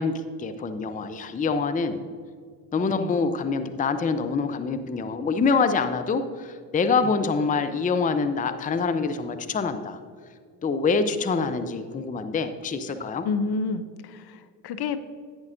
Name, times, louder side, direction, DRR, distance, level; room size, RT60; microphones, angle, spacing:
voice 1, 0.0-2.0 2.7-10.0 10.6-13.2, left 4 dB, 15° left, 10 dB, 0.6 m, -25 dB
voice 2, 13.2-15.0, left 4 dB, 55° left, 11 dB, 0.7 m, -30 dB
11.0 x 9.5 x 2.6 m, 2.1 s
hypercardioid pair, 65°, 47 cm